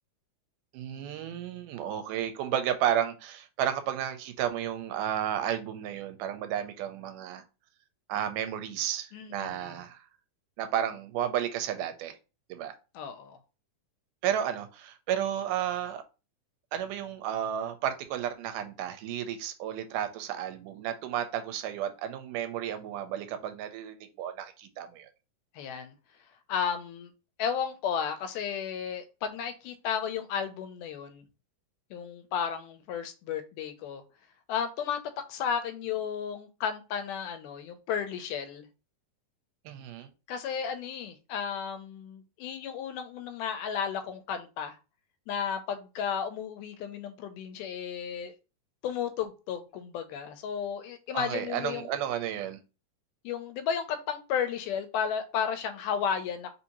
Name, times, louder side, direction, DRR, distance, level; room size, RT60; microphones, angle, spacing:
voice 1, 0.7-7.4 8.1-10.0 10.6-12.2 12.5-12.7 14.2-16.0 16.7-25.1 39.7-40.1 51.1-52.6, right 10 dB, 85° right, 2.1 m, -32 dB
voice 2, 9.1-9.7 12.9-13.4 25.6-26.0 26.5-27.1 27.4-31.2 31.9-34.0 34.5-35.0 35.3-38.7 40.3-44.8 45.3-48.3 48.8-51.9 53.2-56.5, left 7 dB, 80° left, 2.1 m, -33 dB
4.9 x 2.7 x 2.9 m
omnidirectional pair, 3.7 m